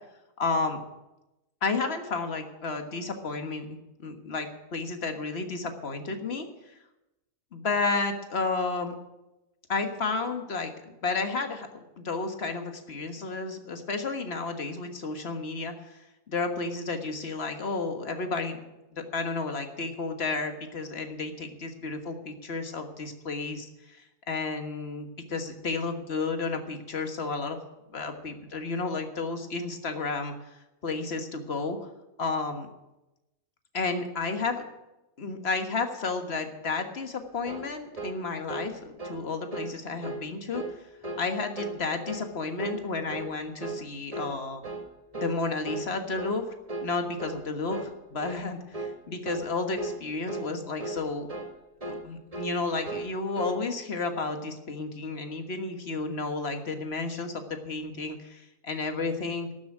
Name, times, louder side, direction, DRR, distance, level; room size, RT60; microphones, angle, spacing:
voice 1, 0.4-0.8 1.6-3.7 4.0-6.7 7.5-8.9 9.7-18.6 18.9-24.0 24.3-27.6 27.9-30.3 30.8-31.8 32.2-32.7 33.7-34.6 35.2-40.6 41.2-44.6 45.1-46.4 46.8-51.3 51.9-59.5, left 3 dB, 50° left, 6 dB, 1.7 m, -32 dB
sound 1, 37.5-37.7 38.0-38.2 38.5-38.7 39.0-39.2 39.5-39.7 40.0-40.2 40.5-40.8 41.0-41.3 41.6-41.8 42.1-42.3 42.6-42.8 43.1-43.3 43.6-43.8 44.1-44.4 44.6-44.9 45.1-45.4 45.7-45.9 46.2-46.4 46.7-46.9 47.2-47.4 47.7-47.9 48.2-48.5 48.7-49.0 49.3-49.5 49.8-50.0 50.3-50.5 50.8-51.0 51.3-51.5 51.8-52.1 52.3-52.6 52.9-53.1 53.4-53.6, right 2 dB, 25° right, 1.4 m, -36 dB
12.5 x 7.2 x 9.9 m, 0.97 s
omnidirectional pair, 1.5 m